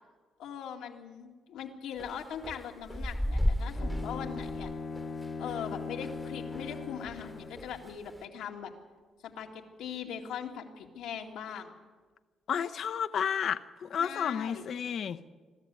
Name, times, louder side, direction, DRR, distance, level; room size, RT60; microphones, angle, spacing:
voice 1, 0.4-4.7 5.4-8.7 9.2-11.7 14.0-14.6, left 8 dB, 90° left, 1 dB, 2.2 m, -40 dB
sound 1, 2.0-6.8 7.1-8.2, equal, ahead, 1.3 m, -34 dB
Bowed string instrument, 3.8-7.8, left 4 dB, 45° left, 1.2 m, -39 dB
voice 2, 12.5-15.2, left 7 dB, 60° left, 10 dB, 0.9 m, -31 dB
22.0 x 13.5 x 9.7 m, 1.4 s
cardioid pair, 90°, 0 cm